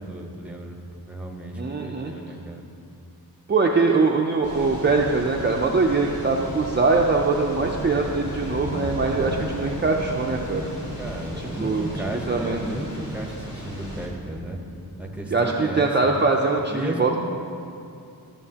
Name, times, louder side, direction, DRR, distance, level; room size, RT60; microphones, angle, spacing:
voice 1, 0.0-2.6 10.9-14.6 15.0-15.9 16.7-17.2, right 1 dB, 5° right, 2 dB, 0.8 m, -34 dB
voice 2, 1.6-2.1 3.5-10.7 11.4-11.9 12.3-12.6 15.3-17.2, right 3 dB, 30° right, 0 dB, 0.5 m, -22 dB
sound 1, 4.4-14.1, equal, 70° left, 2.3 m, -34 dB
13.5 x 7.1 x 2.9 m, 2.5 s
wide cardioid pair, 105°, 38 cm